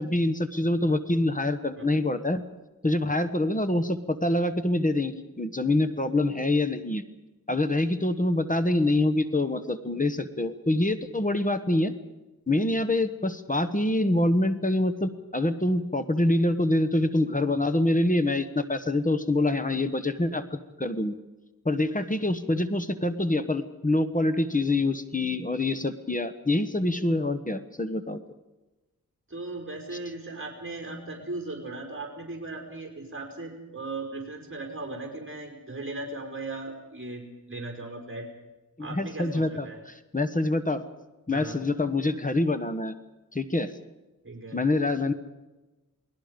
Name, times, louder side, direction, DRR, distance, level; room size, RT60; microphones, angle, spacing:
voice 1, 0.0-2.4 2.8-7.0 7.5-11.9 12.5-21.2 21.6-28.2 38.8-40.8 41.3-42.9 43.3-43.7 44.5-45.1, left 2 dB, 25° left, 10 dB, 1.3 m, -25 dB
voice 2, 29.3-38.3 38.8-39.8 41.3-41.6 44.2-44.6, right 2 dB, 35° right, 1 dB, 4.9 m, -37 dB
28.5 x 19.5 x 5.2 m, 1.1 s
wide cardioid pair, 90°, 34 cm